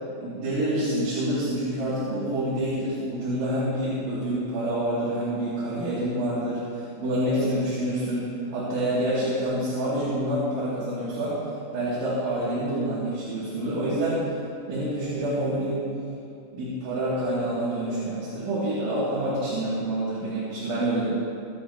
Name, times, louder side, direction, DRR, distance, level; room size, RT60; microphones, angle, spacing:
voice 1, 0.2-11.5 11.7-14.3 14.7-15.8 16.5-21.1, right 1 dB, 70° right, -10 dB, 4.7 m, -27 dB
23.0 x 11.5 x 2.8 m, 2.4 s
omnidirectional pair, 5.8 m